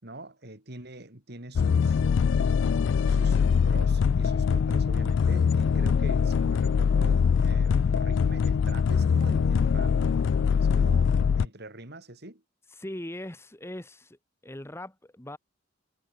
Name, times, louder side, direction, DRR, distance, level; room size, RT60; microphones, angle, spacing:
voice 1, 0.0-2.0 3.1-10.0 10.8-12.4, right 2 dB, 55° right, 4.0 m, -44 dB
sound 1, 1.6-11.5, left 6 dB, 65° left, 0.3 m, -23 dB
voice 2, 12.8-14.2 14.4-15.4, left 1 dB, 15° left, 1.3 m, -40 dB
head